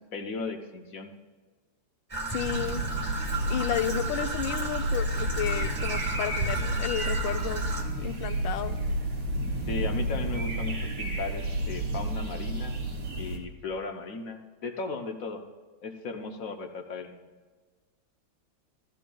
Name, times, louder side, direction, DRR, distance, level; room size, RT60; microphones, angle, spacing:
voice 1, 0.1-1.1 9.7-12.8 13.2-15.4 15.8-17.3, left 4 dB, 55° left, 5 dB, 1.0 m, -36 dB
Traffic noise roadway noise / Trickle dribble, 2.1-7.8, right 3 dB, 20° right, 1.2 m, -34 dB
voice 2, 2.3-2.8 3.5-7.7 8.0-8.8, left 11 dB, 80° left, 9 dB, 1.4 m, -32 dB
sound 1, 2.4-13.4, right 1 dB, 80° right, 2.5 m, -31 dB
15.5 x 13.5 x 2.3 m, 1.4 s
omnidirectional pair, 2.1 m